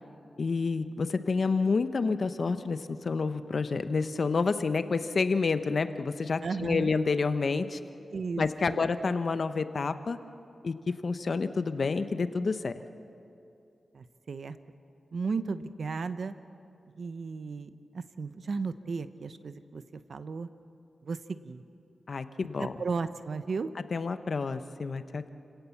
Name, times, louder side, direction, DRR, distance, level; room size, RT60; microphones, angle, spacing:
voice 1, 0.4-7.8 8.4-10.2 10.6-12.8 22.1-22.7 23.9-25.3, left 4 dB, 60° left, 11 dB, 1.0 m, -29 dB
voice 2, 6.4-6.9 8.1-8.9 13.9-14.6 15.1-16.3 17.0-19.8 20.1-20.5 21.0-21.6 22.6-23.7, right 4 dB, 70° right, 12 dB, 0.9 m, -35 dB
29.5 x 17.5 x 7.3 m, 2.7 s
wide cardioid pair, 80°, 0 cm